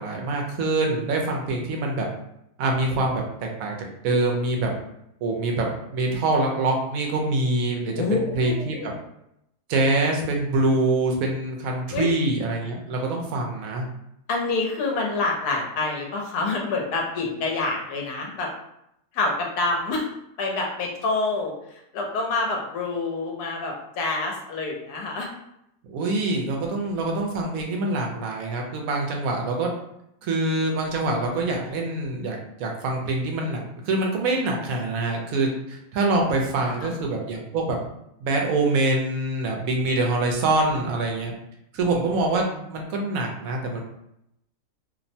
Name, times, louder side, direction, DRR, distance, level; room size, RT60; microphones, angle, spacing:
voice 1, 0.0-2.1 2.6-3.2 3.6-3.8 4.0-4.7 5.2-8.9 9.7-13.8 25.9-29.7 30.2-37.8 38.2-41.3 41.7-43.8, right 2 dB, 70° right, 1 dB, 1.0 m, -25 dB
voice 2, 8.0-8.9 11.9-12.1 14.3-18.5 19.1-20.0 20.4-21.5 21.9-25.3 36.6-36.9, left 3 dB, 85° left, 0 dB, 1.2 m, -27 dB
2.9 x 2.1 x 2.6 m, 0.79 s
omnidirectional pair, 1.6 m